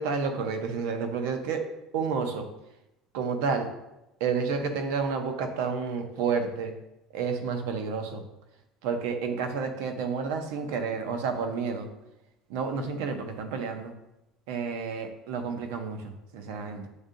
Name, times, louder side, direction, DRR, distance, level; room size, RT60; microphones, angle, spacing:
voice 1, 0.0-1.6 1.9-2.5 3.1-3.7 4.2-6.7 7.1-8.2 8.8-11.9 12.5-13.9 14.5-16.9, right 5 dB, 90° right, 6 dB, 0.6 m, -30 dB
7.8 x 2.7 x 2.5 m, 0.91 s
cardioid pair, 175°, 0 cm